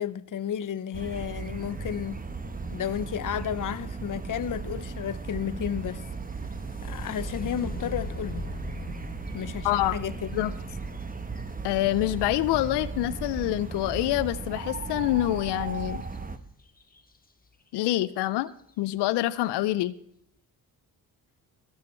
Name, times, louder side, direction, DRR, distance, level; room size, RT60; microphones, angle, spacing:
voice 1, 0.0-2.2 2.7-6.0 6.8-8.5 9.3-10.3, left 9 dB, 50° left, 0.8 m, -32 dB
sound 1, 0.9-16.4, right 4 dB, 20° right, 1.0 m, -36 dB
sound 2, 6.1-13.9 16.0-16.2 16.6-17.2 17.8-17.9 18.4-18.7, left 2 dB, 20° left, 1.4 m, -42 dB
voice 2, 9.6-10.0 10.3-10.5 11.6-16.0 17.7-18.5 18.8-19.9, left 15 dB, 90° left, 0.5 m, -26 dB
21.0 x 7.2 x 4.4 m
cardioid pair, 70°, 39 cm